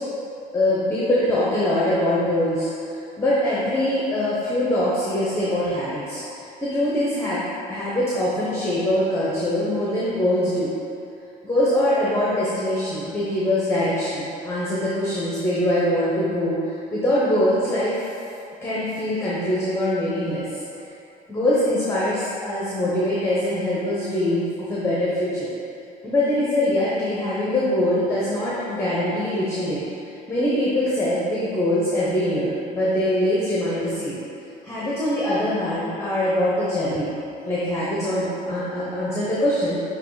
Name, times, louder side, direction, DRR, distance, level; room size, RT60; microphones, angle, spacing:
voice 1, 0.5-2.7 3.2-6.2 6.6-7.4 7.7-10.7 11.4-18.1 18.6-20.4 21.3-25.5 26.0-29.8 30.3-34.2 34.6-37.1 37.4-39.8, left 1 dB, 15° left, -8 dB, 1.1 m, -23 dB
7.5 x 3.1 x 4.1 m, 2.8 s
cardioid pair, 110°, 17 cm